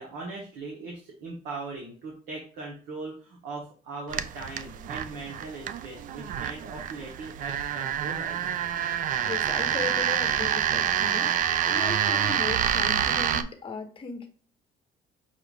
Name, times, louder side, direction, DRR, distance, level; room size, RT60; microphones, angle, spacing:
voice 1, 0.0-8.4, right 3 dB, 85° right, -1 dB, 1.1 m, -39 dB
sound 1, 4.1-13.4, right 9 dB, 50° right, 0.4 m, -27 dB
voice 2, 9.2-14.3, left 5 dB, 30° left, 5 dB, 1.0 m, -37 dB
5.6 x 2.4 x 3.4 m, 0.40 s
cardioid pair, 110°, 17 cm